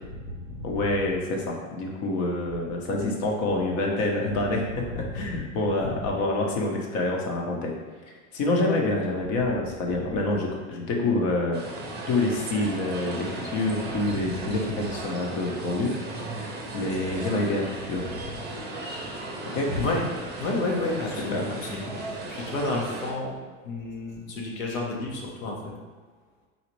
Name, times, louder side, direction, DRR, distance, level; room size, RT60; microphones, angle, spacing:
voice 1, 0.1-0.8 4.9-5.4 5.7-5.9 13.9-14.3 18.0-18.1 19.7-20.0 20.4-21.9 22.3-23.4 23.6-25.7, left 2 dB, 85° left, -1 dB, 1.0 m, -31 dB
voice 2, 0.6-7.7 8.3-11.6 12.1-16.0 16.7-18.1 19.5-19.7 21.3-21.5, left 2 dB, 45° left, 0 dB, 0.8 m, -27 dB
sound 1, 11.5-23.1, right 2 dB, 25° right, 0.6 m, -36 dB
4.1 x 2.4 x 3.0 m, 1.4 s
supercardioid pair, 115°, 40 cm